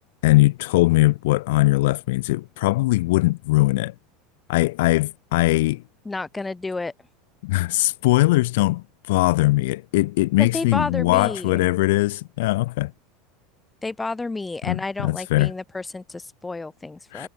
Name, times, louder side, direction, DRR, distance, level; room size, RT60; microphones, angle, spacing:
voice 1, 0.2-3.9 4.5-5.8 7.4-12.9 14.7-15.5 17.1-17.3, left 20 dB, 75° left, 1.3 m, -20 dB
voice 2, 6.0-6.9 10.4-11.7 13.8-17.3, left 3 dB, 10° left, 3.3 m, -30 dB
supercardioid pair, 155°, 0 cm